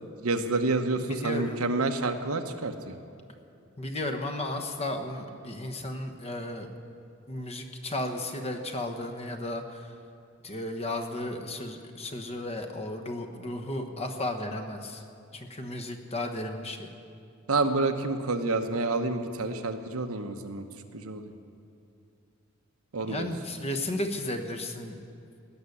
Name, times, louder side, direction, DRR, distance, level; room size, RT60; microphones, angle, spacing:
voice 1, 0.2-3.0 17.5-20.6 20.9-21.3 22.9-23.3, right 3 dB, 85° right, 6 dB, 1.0 m, -28 dB
voice 2, 1.0-1.6 3.8-6.7 7.3-9.9 10.4-15.0 15.3-16.9 23.1-25.0, left 1 dB, 30° left, 6 dB, 1.1 m, -34 dB
17.5 x 6.7 x 9.8 m, 2.6 s
head